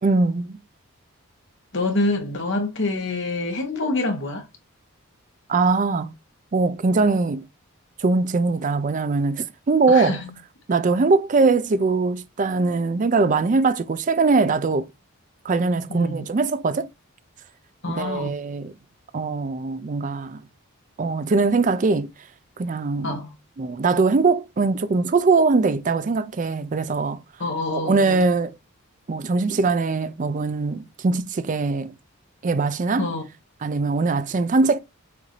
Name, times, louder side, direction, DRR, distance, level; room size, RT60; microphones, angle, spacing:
voice 1, 0.0-0.6 5.5-6.1 6.5-7.4 8.0-10.2 10.7-14.9 15.4-16.9 17.9-18.7 19.1-20.4 21.0-22.1 22.6-23.2 23.6-27.2 27.7-28.6 29.1-31.9 32.4-33.1 33.6-34.8, right 3 dB, 35° right, 0.4 m, -21 dB
voice 2, 1.7-4.4 9.9-10.3 15.9-16.2 17.8-18.3 23.0-23.3 27.4-28.3 33.0-33.2, left 2 dB, 55° left, 1.4 m, -26 dB
6.5 x 2.6 x 3.1 m
head